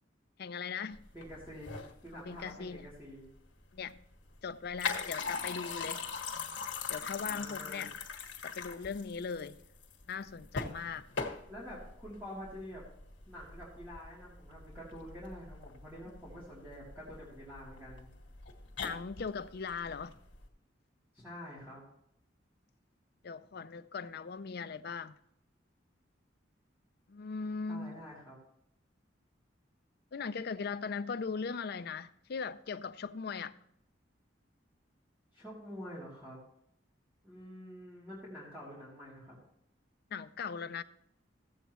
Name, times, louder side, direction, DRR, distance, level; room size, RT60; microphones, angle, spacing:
voice 1, 0.4-1.0 2.3-2.9 3.7-4.0 4.4-6.1 6.9-7.9 8.4-9.6 10.1-11.1 18.8-20.2 23.2-25.1 27.1-28.0 30.1-33.6 40.1-40.8, left 5 dB, 60° left, 0.5 m, -39 dB
sound 1, 0.9-20.5, left 5 dB, 85° left, 1.6 m, -42 dB
voice 2, 1.1-3.3 7.2-7.9 11.5-12.8 13.3-18.1 21.1-21.9 27.7-28.4 35.3-36.4 37.2-39.3, equal, 10° right, 2.8 m, -47 dB
15.0 x 8.0 x 3.1 m
head